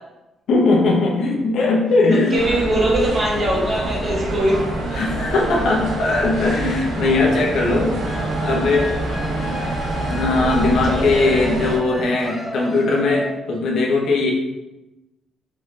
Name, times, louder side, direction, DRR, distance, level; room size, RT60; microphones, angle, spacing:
voice 1, 0.5-2.4 4.9-8.0 8.4-8.9 10.1-14.3, left 3 dB, 55° left, -1 dB, 0.8 m, -19 dB
voice 2, 2.1-4.6 10.8-11.4, right 1 dB, 25° right, -3 dB, 1.0 m, -21 dB
sound 1, 2.3-11.8, right 2 dB, 85° right, 1.1 m, -26 dB
sound 2, 8.0-13.6, left 2 dB, 10° left, 0.5 m, -33 dB
3.8 x 3.2 x 3.7 m, 1.0 s
cardioid pair, 175°, 0 cm